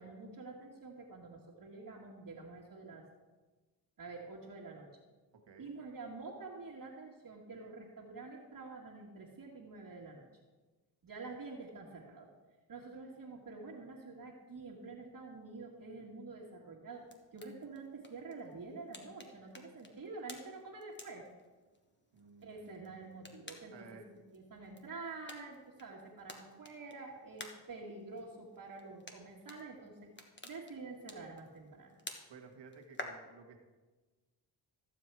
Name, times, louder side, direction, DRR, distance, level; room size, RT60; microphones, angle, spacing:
voice 1, 0.0-3.1 4.0-4.9 5.6-10.3 11.0-12.3 12.7-21.3 22.4-30.0 30.4-32.0, right 3 dB, 50° right, -4 dB, 1.7 m, -48 dB
voice 2, 5.3-5.7 22.1-23.3 23.7-24.1 32.3-33.6, right 5 dB, 80° right, 4 dB, 1.7 m, -55 dB
sound 1, 16.9-33.1, left 2 dB, 25° left, 1.4 m, -54 dB
14.0 x 7.6 x 4.6 m, 1.3 s
cardioid pair, 95°, 43 cm